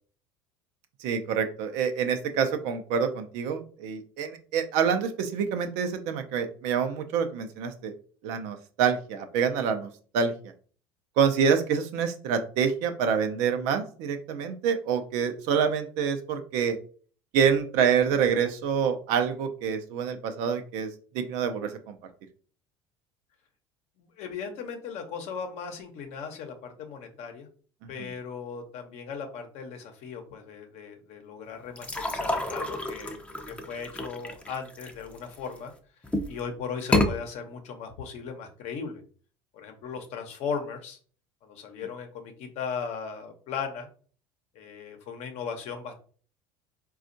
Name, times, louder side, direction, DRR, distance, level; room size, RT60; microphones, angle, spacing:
voice 1, 1.0-7.9 8.2-9.9 10.1-10.3 11.2-16.8 17.3-20.9 21.1-22.0 27.8-28.1, right 7 dB, 70° right, 8 dB, 0.6 m, -27 dB
voice 2, 24.0-27.5 27.9-35.7 36.3-39.0 39.5-41.0 41.4-43.9 44.5-46.0, left 6 dB, 60° left, 5 dB, 0.8 m, -37 dB
sound 1, 31.8-35.6 36.0-36.4 36.8-37.1, left 2 dB, 10° left, 0.5 m, -29 dB
4.1 x 2.3 x 2.6 m, 0.43 s
hypercardioid pair, 80°, 13 cm